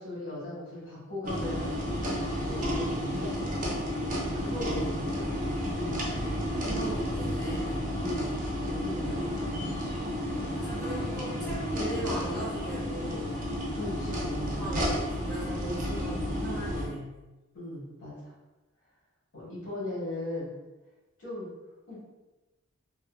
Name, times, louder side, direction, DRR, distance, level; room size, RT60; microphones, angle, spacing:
voice 1, 0.0-3.6 4.3-6.1 8.0-9.6 11.4-11.6 13.7-15.0 15.6-15.9 17.5-18.3 19.3-20.6 21.2-21.5 21.9-22.1, left 1 dB, 60° left, -7 dB, 1.1 m, -39 dB
sound 1, 1.2-16.9, equal, 35° right, 0.5 m, -31 dB
voice 2, 4.6-5.1 6.2-7.8 10.3-13.4 14.1-17.1, right 1 dB, 5° left, -11 dB, 0.7 m, -40 dB
2.6 x 2.5 x 2.2 m, 1.1 s
head